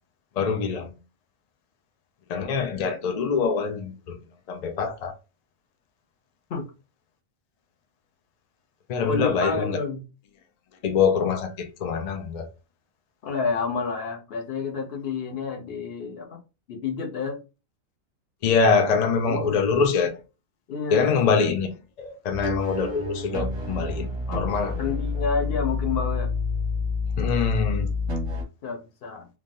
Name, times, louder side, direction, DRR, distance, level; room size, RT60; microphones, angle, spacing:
voice 1, 0.4-0.9 2.3-4.2 4.5-5.1 8.9-9.8 10.8-12.5 18.4-20.1 20.9-21.7 22.0-24.8 27.2-27.9, left 5 dB, 85° left, 0.3 m, -24 dB
voice 2, 9.0-10.0 13.2-16.4 16.7-17.4 19.3-20.1 20.7-21.1 24.8-26.3 28.6-29.3, left 4 dB, 55° left, 0.8 m, -29 dB
sound 1, 22.3-28.4, left 3 dB, 30° right, 0.6 m, -28 dB
3.3 x 2.2 x 2.5 m
omnidirectional pair, 1.3 m